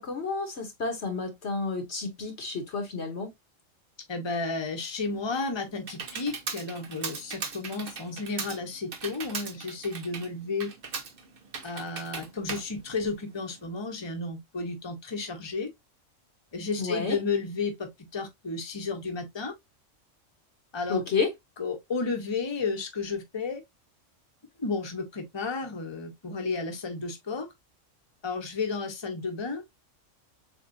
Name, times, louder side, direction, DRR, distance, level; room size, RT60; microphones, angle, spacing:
voice 1, 0.0-3.3 16.8-17.2 20.9-21.3, left 4 dB, 60° left, 1.3 m, -30 dB
voice 2, 4.1-10.7 11.6-15.7 16.5-19.5 20.7-21.0 21.6-23.6 24.6-27.5 28.2-29.6, left 4 dB, 25° left, 1.0 m, -32 dB
Computer keyboard, 5.1-13.6, right 5 dB, 50° right, 1.0 m, -39 dB
7.1 x 2.5 x 2.5 m
omnidirectional pair, 1.3 m